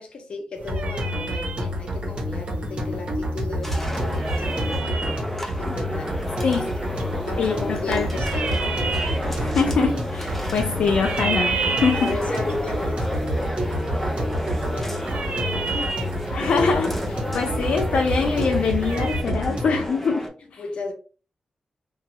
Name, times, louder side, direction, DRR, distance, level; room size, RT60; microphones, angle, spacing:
voice 1, 0.0-5.2 5.6-8.5 11.9-15.4 15.7-16.0 20.6-20.9, left 3 dB, 55° left, 0.7 m, -35 dB
sound 1, 0.6-19.2, right 4 dB, 85° right, 0.5 m, -33 dB
sound 2, 0.7-19.9, equal, 50° right, 1.0 m, -28 dB
sound 3, 3.6-20.3, equal, 10° left, 0.6 m, -32 dB
voice 2, 7.4-8.1 9.4-12.1 16.3-20.6, left 5 dB, 75° left, 0.4 m, -24 dB
3.0 x 2.3 x 2.8 m
wide cardioid pair, 140°, 2 cm